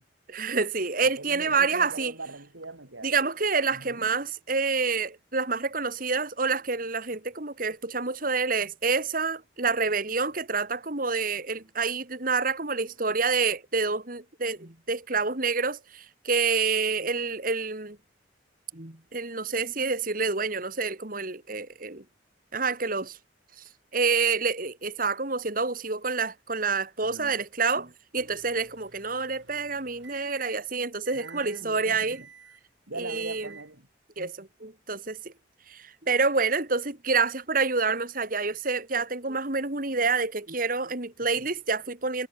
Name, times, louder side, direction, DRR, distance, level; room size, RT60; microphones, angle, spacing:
voice 1, 0.3-2.1 3.0-18.0 18.7-22.0 22.5-23.2 23.9-32.2 33.0-33.5 34.2-35.3 35.7-42.3, right 4 dB, 45° right, 2.3 m, -28 dB
voice 2, 1.0-3.1 3.7-4.1 27.0-27.4 31.1-32.3 32.9-33.9 41.4-41.5, right 2 dB, 85° right, 4.8 m, -42 dB
Microwave oven, 28.2-30.7 31.0-31.6 32.1-32.7 33.1-33.7, right 6 dB, 70° right, 7.6 m, -51 dB
head